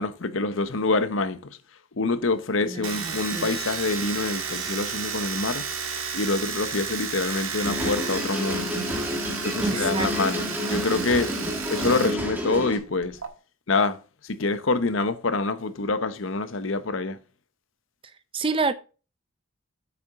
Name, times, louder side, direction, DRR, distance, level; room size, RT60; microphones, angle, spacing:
voice 1, 0.0-1.5 2.0-5.7 6.1-8.7 9.4-11.3 11.7-13.2 13.7-17.2, left 3 dB, 70° left, 0.8 m, -26 dB
voice 2, 2.7-3.5 9.6-10.6 11.4-11.5 18.3-18.7, right 3 dB, 25° right, 0.5 m, -29 dB
Domestic sounds home sounds, 2.8-12.2 12.4-13.3, right 6 dB, 85° right, 1.8 m, -32 dB
sound 1, 7.6-12.8, equal, 10° right, 1.5 m, -29 dB
8.5 x 5.9 x 3.6 m
head